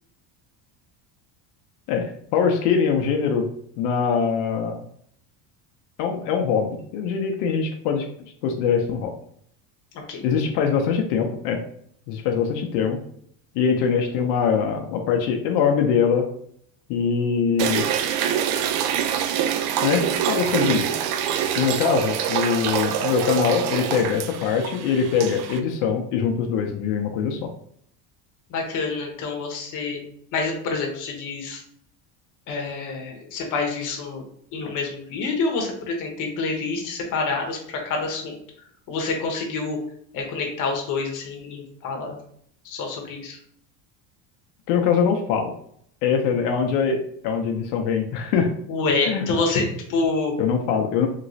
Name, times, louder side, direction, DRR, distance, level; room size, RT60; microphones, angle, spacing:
voice 1, 1.9-3.5 3.8-4.8 6.0-8.1 8.4-9.1 10.2-11.6 12.1-13.0 13.5-16.3 16.9-17.8 19.8-20.9 21.6-27.5 44.7-45.5 46.0-48.5 49.1-49.2 50.4-51.1, left 6 dB, 85° left, 3 dB, 0.7 m, -23 dB
sound 1, 17.6-25.6, right 9 dB, 85° right, 0.5 m, -25 dB
voice 2, 28.5-30.0 30.3-31.6 32.5-34.2 34.5-38.4 38.9-39.8 40.1-42.2 42.6-43.4 48.7-50.3, left 3 dB, 45° left, 1 dB, 0.9 m, -27 dB
3.0 x 2.9 x 2.6 m, 0.66 s
cardioid pair, 160°, 44 cm